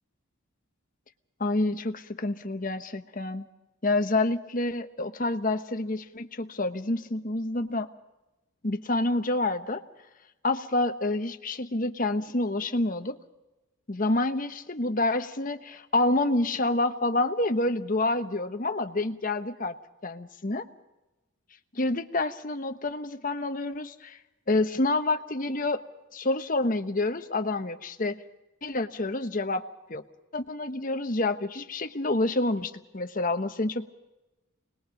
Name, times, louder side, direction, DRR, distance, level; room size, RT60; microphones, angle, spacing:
voice 1, 1.4-3.5 3.8-7.9 8.6-9.8 10.4-13.2 13.9-19.8 20.0-20.6 21.7-24.2 24.5-25.8 26.1-28.2 28.6-29.6 29.9-30.0 30.3-33.9, left 2 dB, 40° left, 8 dB, 1.0 m, -28 dB
26.5 x 20.5 x 5.2 m, 1.0 s
head